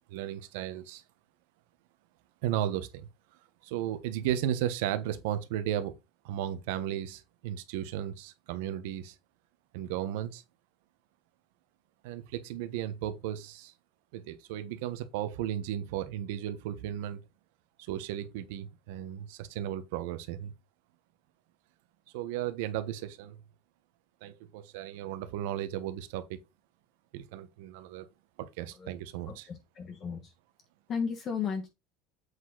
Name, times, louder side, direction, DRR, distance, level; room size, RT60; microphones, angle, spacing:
voice 1, 0.1-1.0 2.4-3.1 3.6-5.9 6.2-9.1 9.7-10.4 12.0-13.7 14.1-17.2 17.8-20.5 22.1-23.4 24.2-26.4 27.1-28.1 28.4-29.5, right 11 dB, 80° right, 1.1 m, -35 dB
voice 2, 29.3-30.3 30.9-31.7, left 6 dB, 30° left, 1.3 m, -34 dB
8.0 x 5.0 x 4.0 m
cardioid pair, 160°, 0 cm